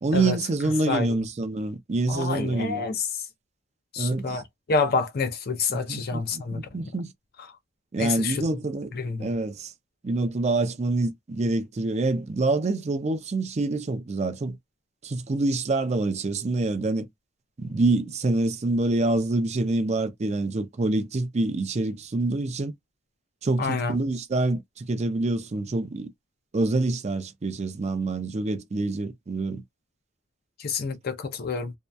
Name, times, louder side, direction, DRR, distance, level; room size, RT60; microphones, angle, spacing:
voice 1, 0.0-2.8 4.0-4.4 5.7-7.1 7.9-8.9 9.2-9.7 10.0-14.6 15.0-17.1 17.6-22.7 23.4-26.1 26.5-29.6, right 2 dB, 35° right, 0.4 m, -26 dB
voice 2, 0.9-1.2 2.1-3.1 3.9-6.9 8.0-8.4 8.9-9.3 23.6-24.0 30.6-31.7, left 4 dB, 50° left, 0.5 m, -28 dB
2.6 x 2.2 x 2.2 m
head